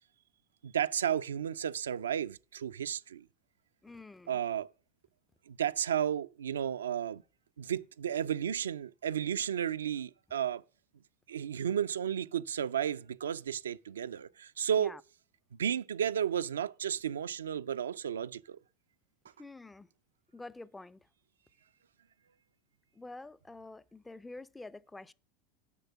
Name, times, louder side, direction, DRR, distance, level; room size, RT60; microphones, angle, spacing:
voice 1, 0.6-3.2 4.3-4.7 5.5-7.2 7.6-10.6 11.3-15.0 15.6-18.6, right 9 dB, 80° right, 0.3 m, -33 dB
voice 2, 3.8-4.4 14.8-15.0 19.4-19.9 20.3-21.0 23.0-25.1, left 2 dB, 10° left, 0.4 m, -47 dB
6.8 x 5.5 x 7.1 m
hypercardioid pair, 85°, 0 cm